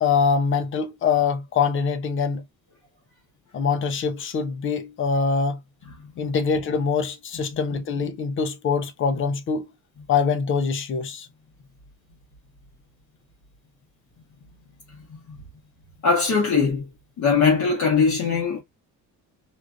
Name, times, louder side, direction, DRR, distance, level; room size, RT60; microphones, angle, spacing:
voice 1, 0.0-2.4 3.5-5.6 6.2-9.7 10.1-11.3, left 5 dB, 35° left, 0.5 m, -24 dB
voice 2, 16.0-16.9 17.2-18.6, left 5 dB, 55° left, 1.4 m, -21 dB
3.2 x 2.5 x 2.4 m
cardioid pair, 170°, 35 cm